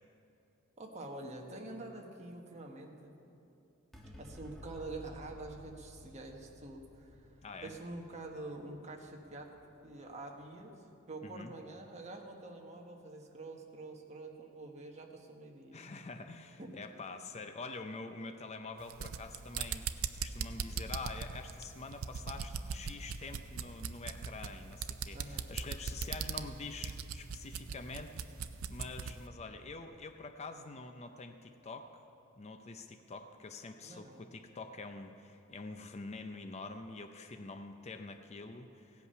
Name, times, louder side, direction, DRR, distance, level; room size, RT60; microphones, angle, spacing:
voice 1, 0.8-3.1 4.2-7.3 7.6-9.5 9.8-10.7 11.1-15.8 16.6-16.7 25.1-25.5 33.8-34.2, right 2 dB, 35° right, 1 dB, 1.3 m, -46 dB
sound 1, 3.9-10.6, left 1 dB, ahead, 1.3 m, -55 dB
voice 2, 7.4-7.7 11.2-11.5 15.7-31.9 32.4-39.1, left 3 dB, 30° left, 6 dB, 0.5 m, -46 dB
sound 2, 18.8-29.2, right 6 dB, 75° right, 0.5 m, -40 dB
16.5 x 8.3 x 5.6 m, 2.7 s
head